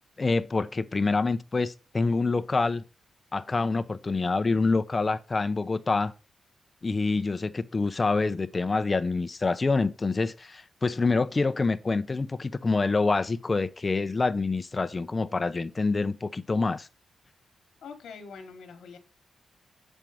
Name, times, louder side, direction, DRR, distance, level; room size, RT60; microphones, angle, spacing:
voice 1, 0.2-2.8 3.3-6.1 6.8-16.9, left 3 dB, 30° left, 0.6 m, -26 dB
voice 2, 17.8-19.0, left 5 dB, 90° left, 1.3 m, -44 dB
7.4 x 4.5 x 5.1 m
cardioid pair, 85°, 0 cm